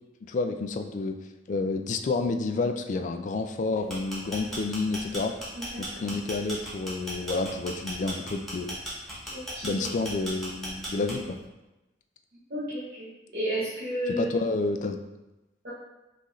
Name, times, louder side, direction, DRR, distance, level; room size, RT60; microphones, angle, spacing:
voice 1, 0.2-1.2 1.5-5.3 5.8-8.8 9.6-11.4 14.2-15.0, left 3 dB, 45° left, 6 dB, 0.3 m, -29 dB
sound 1, 3.8-11.4, equal, ahead, 1.0 m, -37 dB
voice 2, 5.5-6.2 9.3-10.0 12.5-14.3 15.6-15.7, right 1 dB, 55° right, -11 dB, 1.0 m, -33 dB
5.5 x 2.5 x 3.1 m, 1.0 s
head